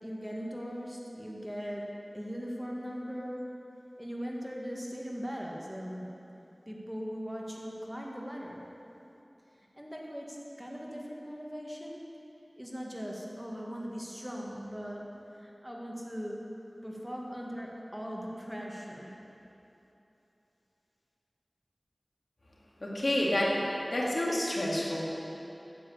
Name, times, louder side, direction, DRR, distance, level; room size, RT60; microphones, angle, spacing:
voice 1, 0.0-1.9 2.1-3.4 4.0-6.1 6.7-8.6 9.8-12.0 12.6-15.1 15.4-16.4 16.8-19.2, equal, 5° right, -2 dB, 1.8 m, -39 dB
voice 2, 22.8-23.5 23.9-25.0, left 1 dB, 75° left, -4 dB, 2.1 m, -28 dB
8.9 x 7.9 x 8.5 m, 3.0 s
wide cardioid pair, 40°, 0 cm